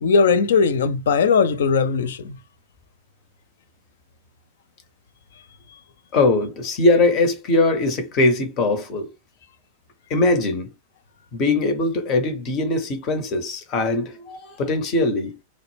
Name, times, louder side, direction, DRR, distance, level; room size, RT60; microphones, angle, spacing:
voice 1, 0.0-2.4, left 5 dB, 60° left, 0.3 m, -19 dB
voice 2, 6.1-9.1 10.1-10.7 11.3-15.4, left 2 dB, 35° left, 0.7 m, -21 dB
2.0 x 2.0 x 3.2 m
figure-of-eight pair, 90°, 0 cm